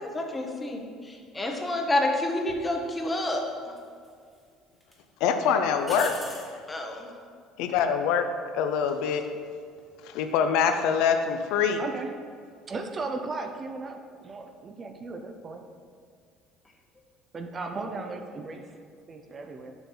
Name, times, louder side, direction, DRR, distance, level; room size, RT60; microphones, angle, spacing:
voice 1, 0.0-3.7 6.7-7.1, left 1 dB, 15° left, 2 dB, 0.8 m, -29 dB
sound 1, 2.5-2.6 3.8-4.4 4.8-4.9 5.8-6.5 9.6-10.0, equal, ahead, 1.1 m, -40 dB
voice 2, 5.2-6.4 7.6-8.3 8.5-9.2 10.0-11.8, left 7 dB, 75° left, 7 dB, 0.5 m, -24 dB
voice 3, 11.8-12.1 12.7-15.7 17.3-18.6 19.1-19.8, right 3 dB, 25° right, 6 dB, 0.4 m, -36 dB
7.0 x 5.5 x 3.8 m, 2.1 s
cardioid pair, 140°, 0 cm